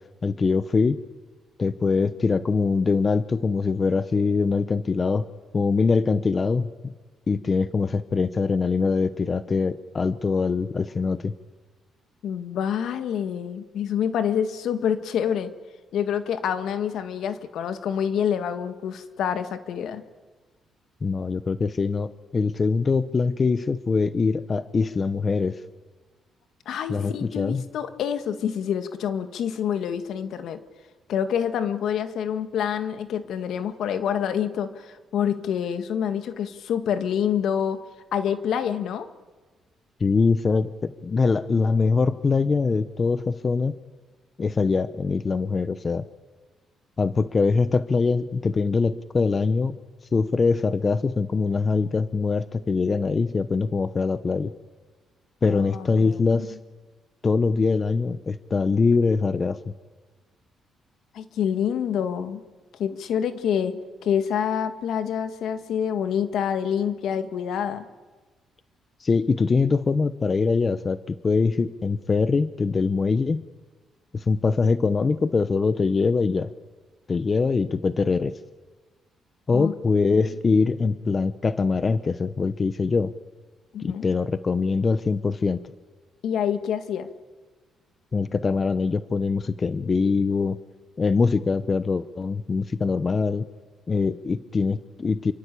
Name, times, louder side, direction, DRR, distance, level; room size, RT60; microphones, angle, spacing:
voice 1, 0.2-1.0 1.6-5.3 5.5-6.9 7.3-11.3 21.0-25.6 26.9-27.7 40.0-43.8 44.4-46.1 47.0-49.8 50.1-54.5 55.4-56.6 57.2-59.6 69.0-73.4 74.1-76.5 77.1-78.3 79.5-83.1 83.8-85.6 88.1-90.6 91.0-93.4 93.9-95.3, left 4 dB, 35° left, 13 dB, 0.9 m, -23 dB
voice 2, 12.2-15.5 15.9-20.0 26.7-30.6 31.1-37.8 38.1-39.1 55.5-56.5 61.1-62.4 62.8-67.9 79.5-79.7 83.7-84.1 86.2-87.1, left 8 dB, 75° left, 10 dB, 1.9 m, -27 dB
27.5 x 24.0 x 8.5 m, 1.3 s
cardioid pair, 90°, 0 cm